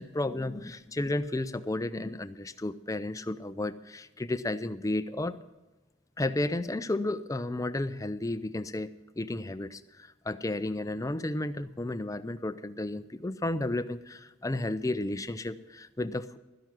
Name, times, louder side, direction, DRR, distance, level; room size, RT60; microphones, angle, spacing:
voice 1, 0.0-5.4 6.2-8.9 9.2-16.4, left 2 dB, 15° left, 13 dB, 0.5 m, -32 dB
13.0 x 10.5 x 6.0 m, 1.1 s
head